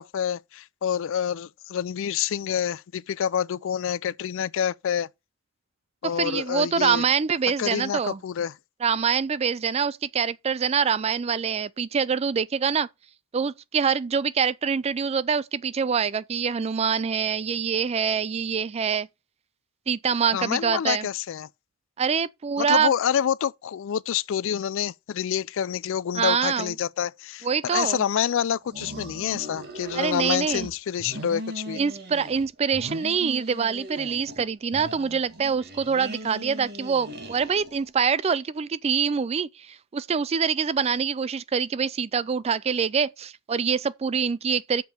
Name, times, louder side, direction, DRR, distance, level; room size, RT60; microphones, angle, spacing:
voice 1, 0.0-5.1 6.0-7.0 7.6-8.5 20.3-21.5 22.6-31.8, left 8 dB, 65° left, 0.4 m, -27 dB
voice 2, 6.0-8.2 8.8-12.9 13.3-19.1 19.9-21.1 22.0-22.9 26.1-26.7 27.4-28.0 29.9-30.7 31.7-44.8, right 6 dB, 30° right, 0.3 m, -25 dB
sound 1, 28.6-30.7 31.0-32.5 32.7-34.5 34.7-37.9, right 1 dB, 50° right, 1.9 m, -39 dB
6.8 x 5.3 x 5.8 m
head